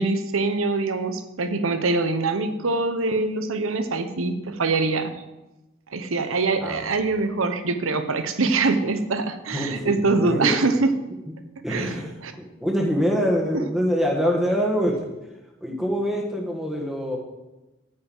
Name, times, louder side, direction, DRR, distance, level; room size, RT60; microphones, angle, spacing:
voice 1, 0.0-5.2 5.9-10.9 11.7-12.3, right 3 dB, 85° right, 9 dB, 0.9 m, -24 dB
voice 2, 9.5-10.6 11.6-15.1 15.6-17.2, equal, ahead, 0 dB, 1.4 m, -25 dB
9.2 x 5.5 x 7.6 m, 1.0 s
head